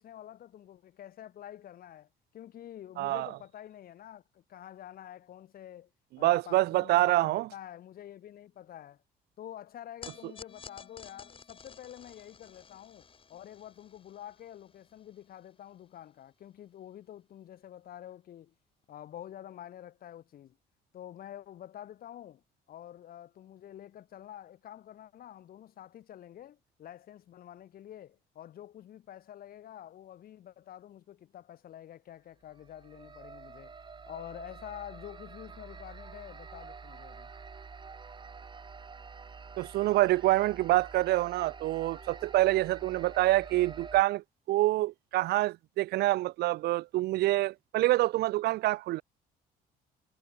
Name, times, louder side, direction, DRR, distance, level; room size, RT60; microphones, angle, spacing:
voice 1, 0.0-5.9 6.2-9.0 9.4-18.5 18.9-20.6 20.9-22.4 22.7-33.7 34.0-37.3, left 11 dB, 60° left, 7.8 m, -48 dB
voice 2, 3.0-3.3 6.2-7.5 39.6-49.0, right 17 dB, 75° right, 0.7 m, -26 dB
sound 1, 10.0-16.4, left 5 dB, 30° left, 7.2 m, -53 dB
sound 2, 32.5-44.0, right 5 dB, 25° right, 5.8 m, -48 dB
cardioid pair, 110°, 17 cm